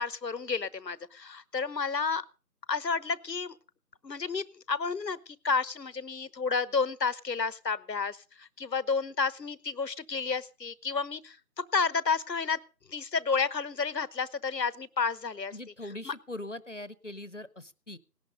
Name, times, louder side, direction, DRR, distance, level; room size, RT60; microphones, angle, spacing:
voice 1, 0.0-2.2 2.7-3.5 4.0-12.6 12.9-15.5 16.1-16.2, left 5 dB, 80° left, 19 dB, 1.1 m, -31 dB
voice 2, 15.5-18.0, left 1 dB, 45° left, 17 dB, 0.9 m, -41 dB
18.0 x 11.5 x 5.2 m, 0.35 s
figure-of-eight pair, 170°, 50 cm